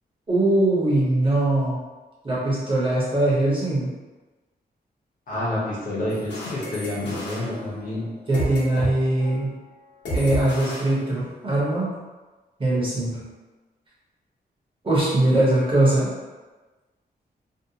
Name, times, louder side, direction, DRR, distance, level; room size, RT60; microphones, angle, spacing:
voice 1, 0.3-1.8 2.2-3.9 8.3-9.5 10.1-11.9 12.6-13.2 14.8-16.1, right 1 dB, 30° right, -7 dB, 0.8 m, -21 dB
voice 2, 5.3-8.1, left 1 dB, 55° left, -8 dB, 0.9 m, -28 dB
sound 1, 6.1-8.9 9.2-9.5 10.0-11.6, equal, 80° left, 0.8 m, -32 dB
2.6 x 2.0 x 2.8 m, 1.2 s
wide cardioid pair, 175°, 18 cm